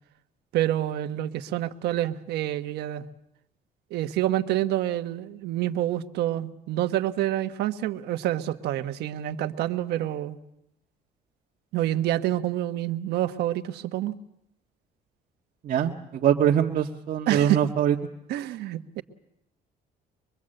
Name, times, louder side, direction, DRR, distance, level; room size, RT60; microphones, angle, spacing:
voice 1, 0.5-3.1 3.9-10.4 11.7-14.2 17.3-17.6 18.3-19.0, right 13 dB, 80° right, 9 dB, 1.3 m, -27 dB
voice 2, 16.2-17.9, right 9 dB, 55° right, -1 dB, 1.6 m, -22 dB
24.0 x 22.5 x 7.8 m, 0.81 s
cardioid pair, 110°, 17 cm